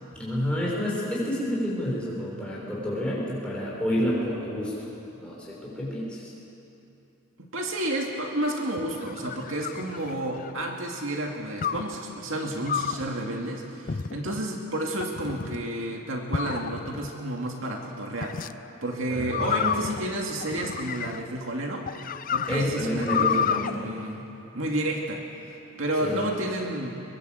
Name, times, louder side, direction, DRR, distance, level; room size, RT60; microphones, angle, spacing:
voice 1, 0.2-4.7 5.1-6.3 19.1-19.8 22.5-23.8 26.0-26.3, equal, 5° left, -6 dB, 6.3 m, -29 dB
voice 2, 7.4-18.4 18.8-21.9 22.3-24.3 24.5-25.2 25.8-27.0, right 1 dB, 65° right, 1 dB, 2.3 m, -31 dB
sound 1, 8.8-10.6 11.6-12.0 12.7-13.1 13.9-14.4 15.0-15.6 16.3-17.1 18.2-18.5 19.3-21.4 21.9-23.7, left 7 dB, 40° left, 0.5 m, -30 dB
23.0 x 22.0 x 7.9 m, 2.8 s
head